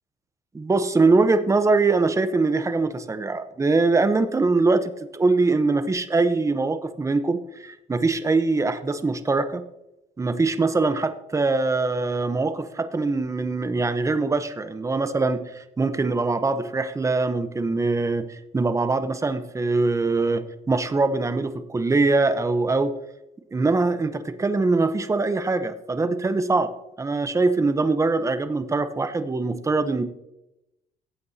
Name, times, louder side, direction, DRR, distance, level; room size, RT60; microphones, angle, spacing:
voice 1, 0.5-9.6 10.2-22.9 23.5-26.7 27.0-30.0, right 3 dB, 20° right, 11 dB, 0.8 m, -23 dB
15.5 x 8.6 x 2.8 m, 0.88 s
cardioid pair, 110°, 17 cm